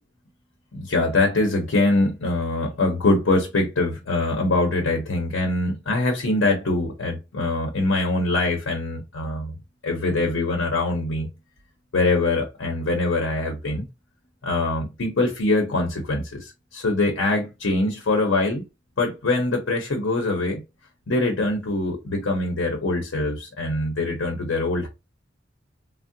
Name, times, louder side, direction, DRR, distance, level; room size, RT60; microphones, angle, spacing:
voice 1, 0.7-9.5 9.8-11.3 11.9-13.9 14.4-18.6 19.0-20.6 21.1-24.9, left 2 dB, 85° left, 0.6 m, -23 dB
3.5 x 2.0 x 2.5 m
head